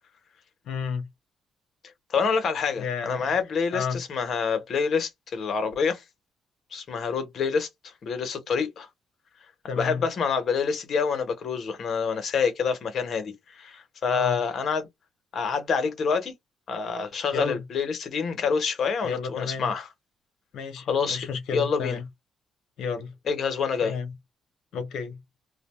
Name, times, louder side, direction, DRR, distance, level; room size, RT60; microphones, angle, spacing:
voice 1, 0.6-1.1 2.8-3.2 3.7-4.0 9.7-10.0 14.1-14.4 17.3-17.6 19.0-19.7 20.5-22.1 22.8-23.1 23.8-24.1 24.7-25.2, left 5 dB, 75° left, 1.0 m, -31 dB
voice 2, 2.1-6.0 6.7-8.9 9.8-14.9 15.3-16.3 16.7-19.9 20.9-22.0 23.3-23.9, left 5 dB, 55° left, 1.0 m, -27 dB
2.4 x 2.2 x 3.1 m
cardioid pair, 90°, 0 cm